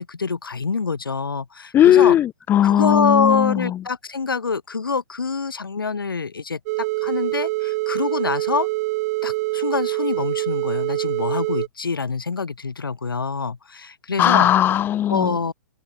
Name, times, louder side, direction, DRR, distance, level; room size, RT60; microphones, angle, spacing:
voice 1, 0.0-2.2 2.6-8.7 9.2-14.5 15.1-15.5, left 4 dB, 85° left, 3.2 m, -25 dB
voice 2, 1.7-3.6 14.2-15.3, left 11 dB, 20° left, 0.4 m, -17 dB
sound 1, 6.7-11.7, right 22 dB, 45° right, 1.0 m, -25 dB
open air
hypercardioid pair, 120°, 11 cm